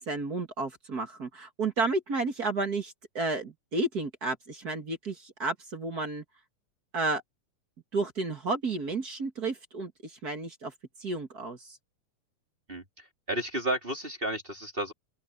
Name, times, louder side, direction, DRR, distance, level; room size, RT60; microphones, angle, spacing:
voice 1, 0.1-6.2 6.9-7.2 7.9-10.7 11.0-11.8, right 3 dB, 35° right, 2.0 m, -32 dB
voice 2, 13.3-14.9, right 1 dB, 15° right, 3.4 m, -32 dB
open air
omnidirectional pair, 3.5 m